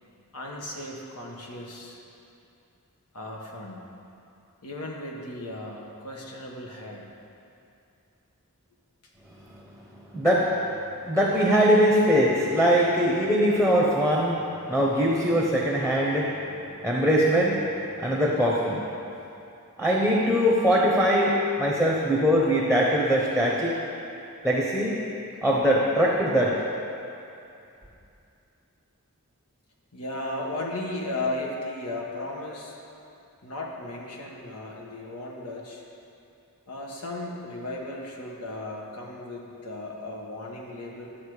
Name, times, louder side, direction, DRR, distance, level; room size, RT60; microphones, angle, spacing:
voice 1, 0.3-2.0 3.1-3.8 4.6-7.1 18.0-18.2 29.9-32.8 33.4-35.8 36.7-41.1, left 2 dB, 85° left, -1 dB, 1.5 m, -35 dB
voice 2, 10.1-10.6 11.0-14.4 14.7-16.3 16.8-17.6 18.0-18.8 19.8-23.7 24.4-24.9 25.4-26.6, equal, 5° left, -4 dB, 0.9 m, -22 dB
11.5 x 7.5 x 5.0 m, 2.7 s
head